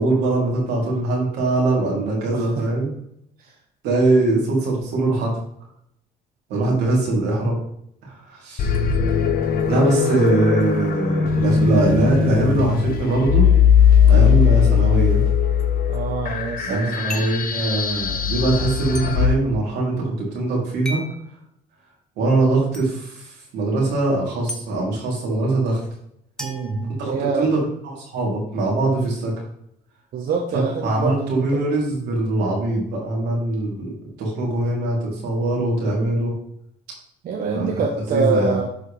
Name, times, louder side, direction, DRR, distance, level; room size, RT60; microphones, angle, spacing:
voice 1, 0.0-2.9 3.8-5.3 6.5-7.6 8.0-8.7 9.7-13.5 14.1-15.2 16.6-20.0 20.3-21.0 22.2-25.8 27.0-29.3 30.5-36.3 37.5-37.7 38.1-38.6, right 2 dB, 90° right, -3 dB, 3.3 m, -22 dB
voice 2, 2.3-2.7 3.4-3.5 9.7-10.2 15.9-17.0 26.4-27.5 30.1-31.5 37.2-38.6, right 5 dB, 60° right, 0 dB, 1.2 m, -25 dB
sound 1, 8.6-19.3, left 7 dB, 60° left, 1.0 m, -19 dB
sound 2, 17.1-17.5 18.9-19.1 20.8-21.2 22.7-22.9 24.5-24.6 26.4-27.5, left 1 dB, 5° left, 1.1 m, -34 dB
11.5 x 4.7 x 3.4 m, 0.73 s
cardioid pair, 110°, 17 cm